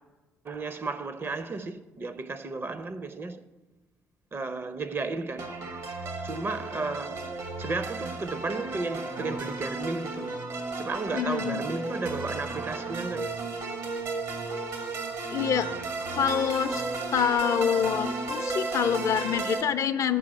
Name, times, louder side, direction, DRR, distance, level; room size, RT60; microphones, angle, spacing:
voice 1, 0.4-3.4 4.3-5.5 6.2-7.3 7.6-10.4 10.8-13.3, right 3 dB, 35° right, 0.6 m, -33 dB
sound 1, 5.4-19.6, right 3 dB, 65° right, 1.3 m, -34 dB
voice 2, 11.1-11.7 15.3-15.7 16.1-16.8 17.1-20.2, left 8 dB, 55° left, 0.5 m, -26 dB
6.8 x 4.7 x 6.9 m
hypercardioid pair, 50°, 7 cm